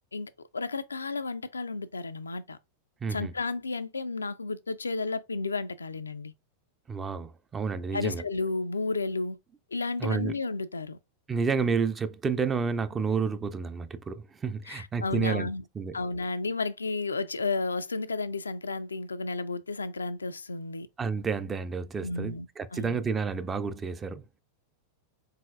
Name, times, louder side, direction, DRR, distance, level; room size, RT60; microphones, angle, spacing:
voice 1, 0.1-2.6 3.1-6.3 7.9-9.4 9.7-11.0 14.7-15.6 15.9-20.9 22.0-22.5 22.7-23.0, left 3 dB, 75° left, 0.3 m, -32 dB
voice 2, 3.0-3.3 6.9-8.2 10.0-10.3 11.3-15.5 15.8-16.0 21.0-24.2, right 5 dB, 20° right, 0.4 m, -30 dB
4.0 x 3.8 x 2.4 m
figure-of-eight pair, 90°, 0 cm